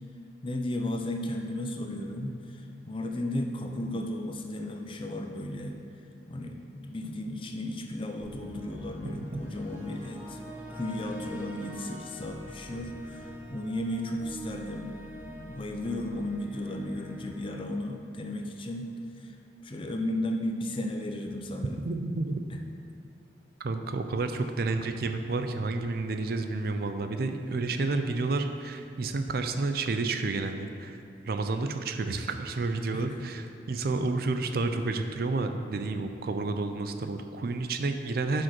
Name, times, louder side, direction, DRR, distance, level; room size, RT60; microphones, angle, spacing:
voice 1, 0.4-2.6 2.9-5.8 6.3-10.4 10.7-15.0 15.4-19.3 19.6-21.8 22.5-22.6 32.9-33.3, left 1 dB, 30° left, 3 dB, 0.6 m, -34 dB
sound 1, 8.2-18.4, equal, 10° right, 1.2 m, -44 dB
voice 2, 21.8-22.4 23.6-31.0 31.2-38.4, right 3 dB, 55° right, 7 dB, 0.5 m, -30 dB
9.7 x 5.1 x 4.4 m, 2.3 s
head